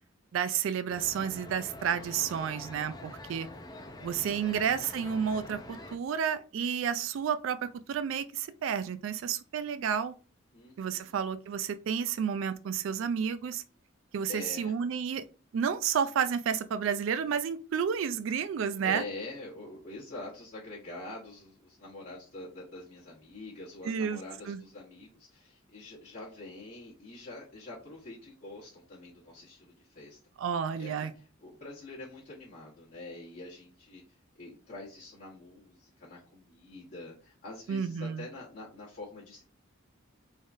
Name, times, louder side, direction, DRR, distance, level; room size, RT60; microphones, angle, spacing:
voice 1, 0.3-3.5 4.0-10.1 10.8-13.6 14.1-15.2 15.5-19.0 23.8-24.2 24.5-24.6 30.4-31.1 37.7-38.3, right 7 dB, 70° right, 0.3 m, -31 dB
sound 1, 0.9-6.0, left 1 dB, 20° left, 0.5 m, -46 dB
voice 2, 4.0-4.7 10.5-11.2 14.3-14.7 18.8-30.2 30.8-34.0 34.3-39.4, left 2 dB, 45° left, 1.2 m, -45 dB
3.7 x 3.5 x 2.6 m
head